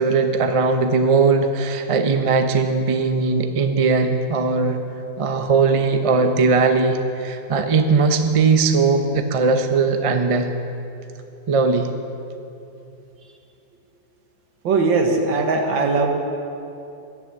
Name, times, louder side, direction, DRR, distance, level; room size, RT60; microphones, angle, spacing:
voice 1, 0.0-4.8 5.2-10.5 11.5-11.9, right 4 dB, 55° right, 6 dB, 0.3 m, -19 dB
voice 2, 14.6-16.1, right 3 dB, 90° right, 3 dB, 2.1 m, -19 dB
12.5 x 10.0 x 7.5 m, 2.7 s
omnidirectional pair, 2.0 m